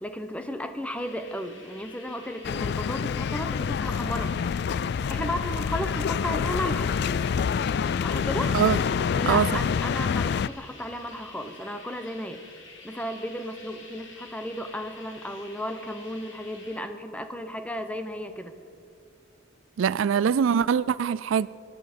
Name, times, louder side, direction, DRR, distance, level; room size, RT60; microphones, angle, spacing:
voice 1, 0.0-4.3 5.1-6.9 8.0-8.5 9.1-12.4 12.8-18.5, equal, 5° left, 0.9 m, -34 dB
sound 1, 1.0-16.8, left 3 dB, 75° left, 3.4 m, -49 dB
sound 2, 2.4-10.5, left 6 dB, 55° left, 0.3 m, -27 dB
sound 3, 5.3-7.8, equal, 20° right, 5.3 m, -45 dB
voice 2, 19.8-21.5, right 7 dB, 75° right, 0.3 m, -23 dB
23.5 x 11.0 x 5.2 m
head